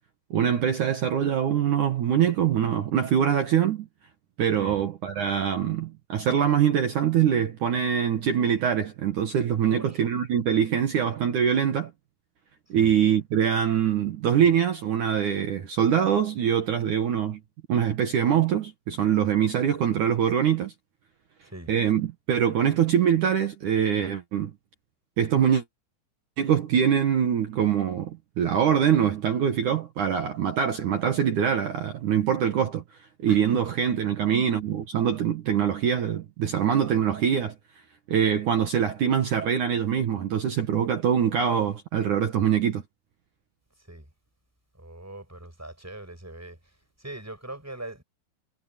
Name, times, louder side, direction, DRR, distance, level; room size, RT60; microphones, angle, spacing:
voice 1, 0.3-3.9 4.4-11.9 12.7-17.4 17.7-20.7 21.7-24.5 25.2-25.6 26.4-32.8 33.2-37.5 38.1-42.8, right 8 dB, 60° right, 2.3 m, -24 dB
voice 2, 9.6-10.0 12.8-12.9 21.5-21.7 33.3-33.4 43.9-44.0 44.8-46.6 47.0-48.0, right 1 dB, 5° right, 5.7 m, -41 dB
omnidirectional pair, 5.0 m